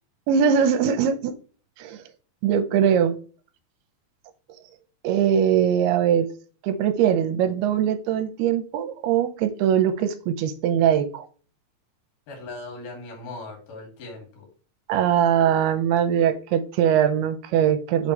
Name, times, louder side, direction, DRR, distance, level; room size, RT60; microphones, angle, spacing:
voice 1, 0.3-1.3 1.8-2.0 2.4-3.2 5.0-6.3 6.6-11.2 14.9-18.1, right 9 dB, 80° right, 10 dB, 2.7 m, -21 dB
voice 2, 12.3-14.5, left 2 dB, 60° left, 0 dB, 3.8 m, -39 dB
6.7 x 5.1 x 3.1 m, 0.39 s
omnidirectional pair, 4.6 m